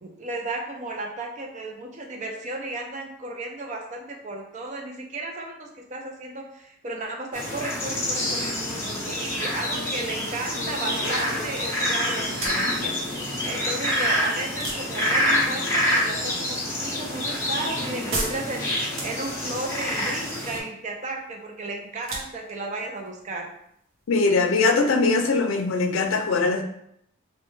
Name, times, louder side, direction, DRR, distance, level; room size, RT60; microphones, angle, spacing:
voice 1, 0.0-8.5 9.0-13.0 13.2-23.5, right 2 dB, 35° right, 2 dB, 0.4 m, -34 dB
sound 1, 7.3-20.6, left 1 dB, 10° left, 0.6 m, -27 dB
sound 2, 12.2-24.2, right 2 dB, 75° right, 0.8 m, -39 dB
voice 2, 24.1-26.6, left 3 dB, 80° left, 5 dB, 0.4 m, -21 dB
3.2 x 2.2 x 3.1 m, 0.74 s
head